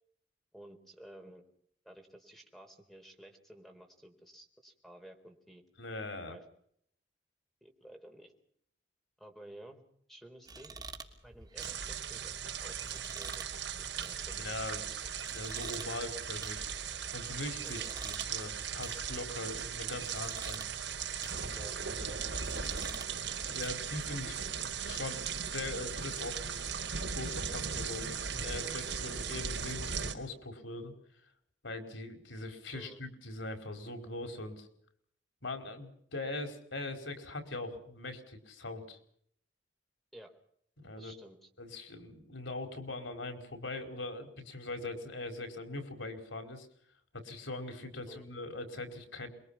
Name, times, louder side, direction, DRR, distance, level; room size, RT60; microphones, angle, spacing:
voice 1, 0.5-1.4 1.8-5.6 6.2-6.4 7.6-8.3 9.2-9.8 10.1-10.9 11.2-15.1 17.6-18.0 21.5-23.0 32.7-33.0 40.1-40.3 41.0-41.5 48.1-48.3, right 1 dB, ahead, 4 dB, 4.3 m, -53 dB
voice 2, 5.8-6.4 14.3-14.8 15.3-16.7 17.1-20.6 23.5-24.3 24.6-26.8 27.1-30.9 31.6-34.7 35.4-39.0 40.8-41.1 41.6-46.7 47.1-49.3, left 2 dB, 90° left, 7 dB, 5.1 m, -41 dB
sound 1, 10.5-23.7, right 3 dB, 20° right, 3.0 m, -49 dB
sound 2, 11.6-30.1, right 7 dB, 75° right, 4.0 m, -38 dB
27.5 x 23.0 x 5.9 m, 0.67 s
head